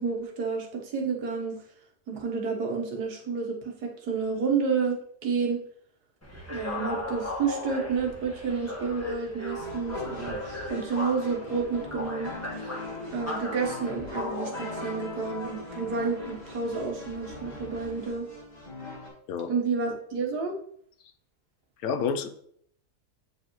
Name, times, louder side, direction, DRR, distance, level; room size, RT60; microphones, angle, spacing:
voice 1, 0.0-1.6 2.1-5.6 6.5-12.7 13.1-18.3 19.5-20.5, right 5 dB, 85° right, 1 dB, 1.7 m, -30 dB
sound 1, 6.2-18.1, left 1 dB, 10° left, 1.2 m, -38 dB
sound 2, 9.5-19.1, left 2 dB, 25° left, 2.5 m, -40 dB
voice 2, 21.8-22.3, left 6 dB, 75° left, 8 dB, 1.1 m, -28 dB
8.1 x 4.7 x 3.0 m, 0.64 s
omnidirectional pair, 1.6 m